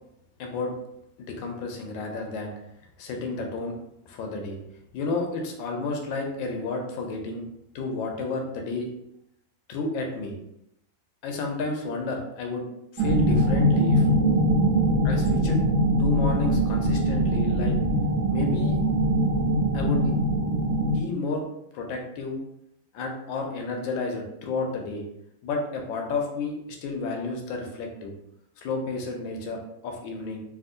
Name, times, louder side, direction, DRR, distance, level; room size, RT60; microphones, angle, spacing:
voice 1, 0.4-0.7 1.2-2.5 3.0-3.8 4.1-4.6 4.9-7.4 7.7-8.9 9.7-10.4 11.2-12.7 12.9-14.1 15.0-15.6 16.0-17.8 18.3-18.8 19.7-20.4 20.9-21.4 21.7-22.4 22.9-25.0 25.4-28.1 28.6-30.4, left 3 dB, 80° left, 2 dB, 1.3 m, -31 dB
sound 1, 13.0-21.0, right 1 dB, 85° right, 1.6 m, -22 dB
3.5 x 2.5 x 2.5 m, 0.79 s
omnidirectional pair, 2.2 m